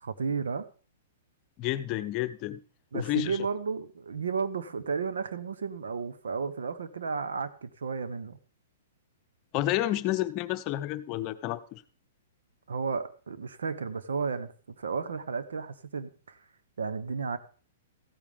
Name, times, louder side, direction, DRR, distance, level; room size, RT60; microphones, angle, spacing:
voice 1, 0.0-0.7 2.9-8.4 12.7-16.4 16.8-17.4, right 5 dB, 90° right, 13 dB, 1.0 m, -33 dB
voice 2, 1.6-2.6 2.9-3.4 9.5-11.8, left 15 dB, 35° left, 11 dB, 0.7 m, -30 dB
15.0 x 8.5 x 3.6 m, 0.39 s
hypercardioid pair, 135°, 0 cm